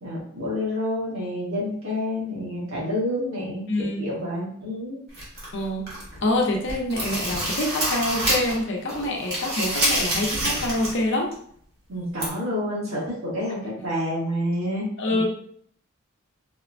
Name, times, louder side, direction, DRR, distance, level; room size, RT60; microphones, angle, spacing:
voice 1, 0.0-5.0 11.9-15.2, left 1 dB, 80° right, -5 dB, 1.4 m, -29 dB
voice 2, 3.7-4.1 5.5-5.9 6.2-11.3 15.0-15.2, left 1 dB, 60° left, 0 dB, 0.7 m, -26 dB
sound 1, 5.1-6.2 6.5-8.6 8.9-11.0 11.3-11.4 12.2-12.3, right 1 dB, 50° right, 1.3 m, -27 dB
4.2 x 2.1 x 2.5 m, 0.63 s
head